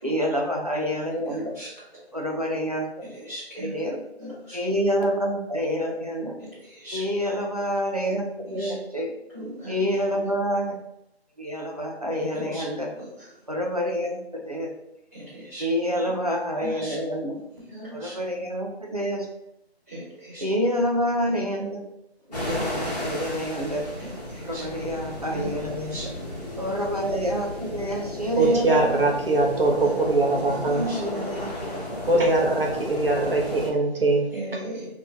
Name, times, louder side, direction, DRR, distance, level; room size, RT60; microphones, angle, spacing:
voice 1, 0.0-1.5 2.1-2.9 3.1-4.0 4.5-6.3 6.9-9.1 9.7-10.8 11.4-12.9 13.5-14.7 15.6-17.3 17.9-19.3 20.4-21.8 22.3-23.9 24.4-26.1 26.6-28.8 30.0-30.1 30.3-31.8, equal, 40° right, 0 dB, 0.4 m, -28 dB
voice 2, 1.3-1.7 3.0-3.9 4.2-4.6 6.4-7.0 8.5-8.7 9.3-9.7 12.2-12.6 13.0-13.1 15.1-15.6 16.6-17.0 17.7-18.2 19.9-20.4 21.3-21.4 24.0-24.6 25.3-25.5 25.9-26.0 28.4-28.5 29.8-29.9 30.3-31.2 34.3-34.8, right 1 dB, 15° right, -15 dB, 1.2 m, -38 dB
sound 1, 22.3-33.7, left 1 dB, 40° left, 1.1 m, -34 dB
voice 3, 28.4-30.8 32.1-34.6, right 2 dB, 60° right, 0 dB, 0.9 m, -22 dB
2.9 x 2.7 x 3.4 m, 0.80 s
figure-of-eight pair, 180°, 32 cm